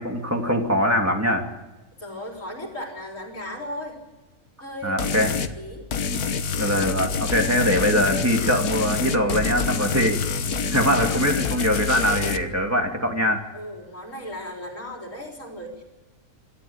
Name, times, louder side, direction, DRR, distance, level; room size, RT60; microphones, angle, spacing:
voice 1, 0.0-1.5 4.8-5.3 6.6-10.2 10.6-13.4, equal, 10° right, 2 dB, 2.7 m, -22 dB
voice 2, 2.0-4.0 4.6-5.9 13.5-15.8, equal, 55° left, 1 dB, 4.4 m, -36 dB
sound 1, 5.0-5.5 5.9-12.4, left 6 dB, 80° left, 1.6 m, -26 dB
26.5 x 13.0 x 8.9 m, 1.1 s
omnidirectional pair, 1.6 m